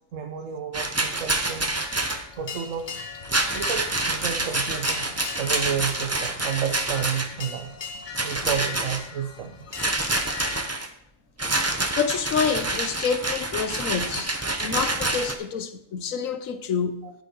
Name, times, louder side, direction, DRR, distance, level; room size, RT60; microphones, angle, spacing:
voice 1, 0.1-1.8 2.4-3.0 3.5-5.1 5.4-7.7 8.2-9.5 17.0-17.1, right 8 dB, 65° right, 5 dB, 1.1 m, -31 dB
Rattle, 0.7-2.2 3.2-7.4 8.1-9.0 9.8-10.9 11.4-15.4, right 2 dB, 20° right, 0.4 m, -27 dB
sound 1, 1.8-10.7, left 6 dB, 40° left, 0.8 m, -39 dB
voice 2, 12.0-17.0, left 6 dB, 65° left, 10 dB, 1.1 m, -28 dB
9.0 x 8.0 x 4.5 m, 0.75 s
omnidirectional pair, 1.6 m